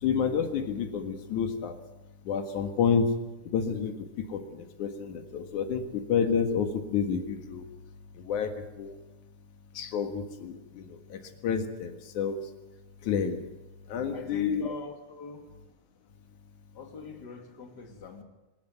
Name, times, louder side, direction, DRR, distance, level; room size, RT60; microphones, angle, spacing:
voice 1, 0.0-1.8 2.3-3.1 3.5-3.9 4.3-7.6 8.2-8.5 8.8-9.0 9.7-12.4 13.0-13.4 13.9-14.6, left 6 dB, 85° left, 7 dB, 3.1 m, -29 dB
voice 2, 14.1-15.5 16.7-18.2, left 5 dB, 35° left, 4 dB, 2.8 m, -42 dB
24.0 x 13.5 x 9.2 m, 1.1 s
omnidirectional pair, 3.4 m